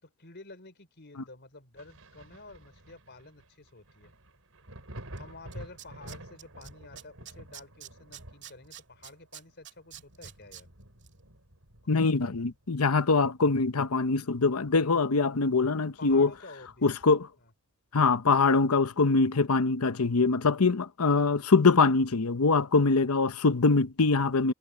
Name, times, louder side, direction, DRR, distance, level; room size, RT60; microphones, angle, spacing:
voice 1, 0.0-4.1 5.1-10.7 11.8-12.5 16.0-16.9 17.4-17.5, left 3 dB, 50° left, 4.3 m, -50 dB
Thunder, 1.8-13.1 13.5-15.0 15.4-15.5 16.0-17.3 18.7-18.8, right 1 dB, 70° right, 5.2 m, -50 dB
Tools, 5.2-5.3 5.5-6.7 7.0-10.6 11.0-11.1, right 12 dB, 50° right, 2.8 m, -46 dB
voice 2, 11.9-16.3 16.8-17.3 17.9-24.5, left 4 dB, 85° left, 0.9 m, -23 dB
head